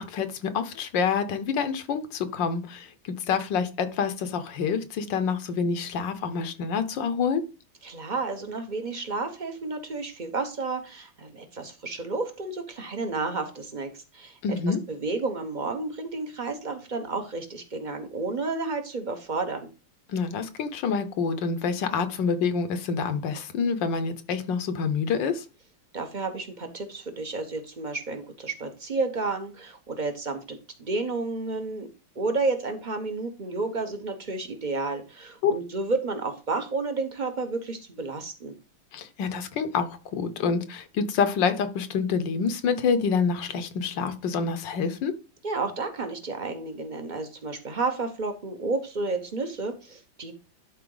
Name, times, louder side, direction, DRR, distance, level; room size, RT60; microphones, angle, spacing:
voice 1, 0.0-7.4 14.4-14.8 20.1-25.4 35.4-35.5 38.9-45.1, left 5 dB, 70° left, 10 dB, 1.5 m, -27 dB
voice 2, 7.8-14.4 14.9-19.6 25.9-31.9 32.2-38.5 45.4-50.3, right 3 dB, 35° right, 6 dB, 0.8 m, -31 dB
11.5 x 4.1 x 3.9 m, 0.32 s
omnidirectional pair, 2.1 m